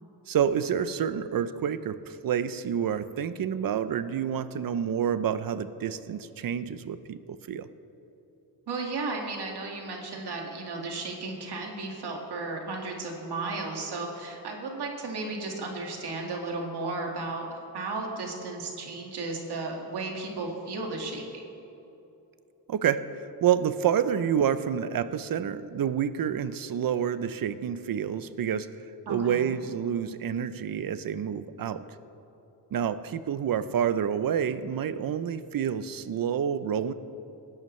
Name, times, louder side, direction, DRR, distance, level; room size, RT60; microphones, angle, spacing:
voice 1, 0.3-7.7 22.7-28.7 29.1-31.8 32.7-36.9, right 8 dB, 55° right, 13 dB, 0.6 m, -28 dB
voice 2, 8.7-21.4 29.1-29.5, right 3 dB, 70° right, 1 dB, 2.1 m, -34 dB
20.0 x 10.5 x 3.2 m, 3.0 s
cardioid pair, 85°, 41 cm